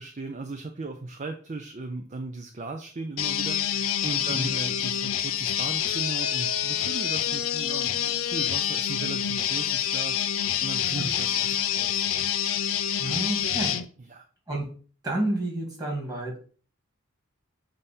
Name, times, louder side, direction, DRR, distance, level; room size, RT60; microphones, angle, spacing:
voice 1, 0.0-12.1 14.0-14.3, right 3 dB, 35° right, 6 dB, 0.5 m, -37 dB
sound 1, 3.2-13.8, left 9 dB, 85° left, 0.6 m, -27 dB
voice 2, 13.0-13.7 14.5-14.7 15.0-16.4, right 1 dB, 20° right, -2 dB, 2.1 m, -29 dB
7.5 x 2.8 x 5.3 m, 0.41 s
head